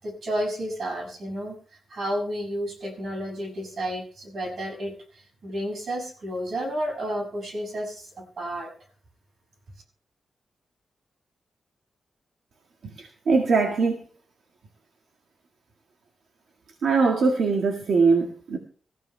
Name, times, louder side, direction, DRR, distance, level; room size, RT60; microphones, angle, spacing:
voice 1, 0.0-1.5 1.9-8.7, equal, 60° right, 1 dB, 6.6 m, -31 dB
voice 2, 13.0-14.0 16.8-18.6, right 4 dB, 75° right, 1 dB, 1.8 m, -21 dB
25.0 x 14.5 x 2.2 m, 0.42 s
wide cardioid pair, 125°, 0 cm